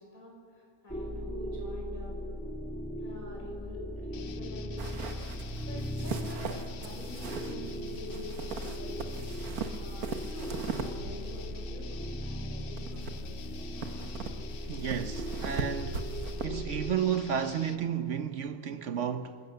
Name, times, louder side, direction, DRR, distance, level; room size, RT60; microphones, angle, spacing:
voice 1, 0.0-2.2 3.0-13.4, left 1 dB, 70° left, 6.3 m, -47 dB
sound 1, 0.9-16.9, equal, 5° left, 1.2 m, -38 dB
sound 2, 4.1-17.8, left 9 dB, 55° left, 0.7 m, -49 dB
sound 3, 4.8-16.5, right 5 dB, 85° right, 1.6 m, -40 dB
voice 2, 14.7-16.0 16.4-19.4, right 8 dB, 60° right, 1.1 m, -32 dB
27.0 x 16.5 x 6.8 m
omnidirectional pair, 1.5 m